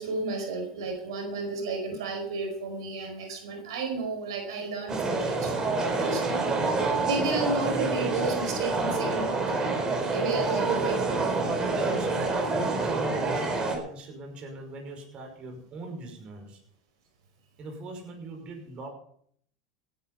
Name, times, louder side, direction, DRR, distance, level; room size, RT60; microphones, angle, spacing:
voice 1, 0.0-6.5 7.0-9.4 10.1-11.1, right 3 dB, 85° right, 4 dB, 4.9 m, -32 dB
sound 1, 4.9-13.8, right 3 dB, 25° right, 4.3 m, -27 dB
voice 2, 10.5-11.1 11.7-16.6 17.6-18.9, right 2 dB, 40° right, 3 dB, 5.5 m, -40 dB
16.5 x 10.5 x 5.6 m, 0.64 s
supercardioid pair, 105°, 3 cm